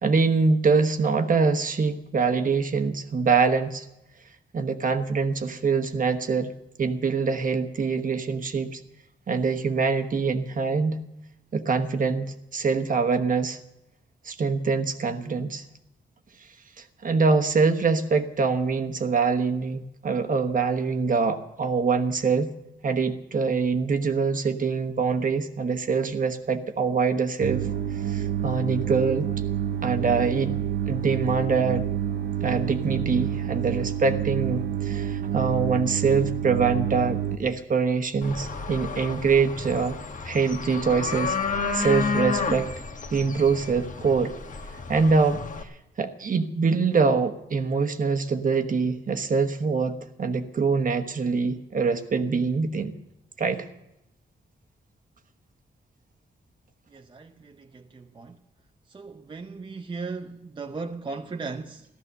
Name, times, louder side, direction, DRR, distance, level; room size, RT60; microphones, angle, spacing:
voice 1, 0.0-3.8 4.5-6.5 6.8-8.8 9.3-11.0 11.5-13.6 14.2-15.6 16.8-22.5 22.8-27.6 27.9-29.3 29.8-30.5 30.9-31.8 32.4-40.0 40.2-41.4 41.7-42.7 43.1-44.3 44.9-45.4 46.0-52.9 53.4-53.7, right 4 dB, 50° right, 1.2 m, -24 dB
sound 1, 27.4-37.4, right 9 dB, 65° right, 0.7 m, -28 dB
sound 2, 38.2-45.6, left 4 dB, 45° left, 1.3 m, -31 dB
voice 2, 56.9-58.4 58.9-61.8, right 4 dB, 25° right, 0.7 m, -37 dB
15.5 x 13.0 x 6.7 m
wide cardioid pair, 120°, 18 cm